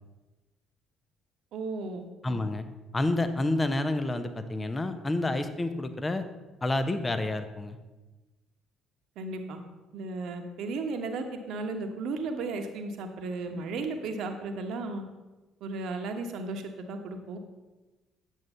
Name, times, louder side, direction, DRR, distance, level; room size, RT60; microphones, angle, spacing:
voice 1, 1.5-2.0 9.2-9.6 9.9-15.0 15.6-17.4, right 3 dB, 60° right, 5 dB, 1.2 m, -35 dB
voice 2, 2.2-2.6 2.9-6.2 6.6-7.8, left 2 dB, 20° left, 9 dB, 1.0 m, -29 dB
9.3 x 7.7 x 5.6 m, 1.1 s
figure-of-eight pair, 50°, 0 cm